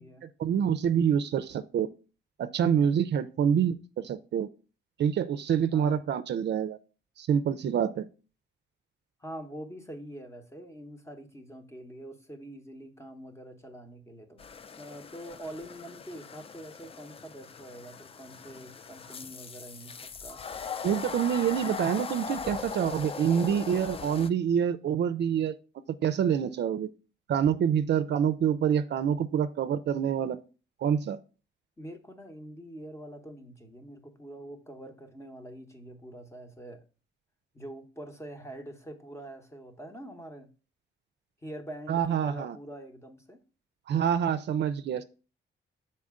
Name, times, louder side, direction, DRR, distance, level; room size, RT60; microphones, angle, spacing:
voice 1, 0.4-1.9 2.4-4.5 5.0-6.8 7.2-8.1 20.8-25.5 26.0-26.9 27.3-30.4 30.8-31.2 41.9-42.6 43.9-45.0, right 8 dB, 60° right, 10 dB, 0.4 m, -26 dB
voice 2, 9.2-14.5 14.8-20.4 31.8-36.8 37.5-40.5 41.4-43.4, right 1 dB, 15° left, 6 dB, 0.9 m, -45 dB
sound 1, 14.4-24.3, left 6 dB, 30° left, 0.3 m, -40 dB
6.4 x 4.2 x 3.6 m, 0.35 s
cardioid pair, 100°, 20 cm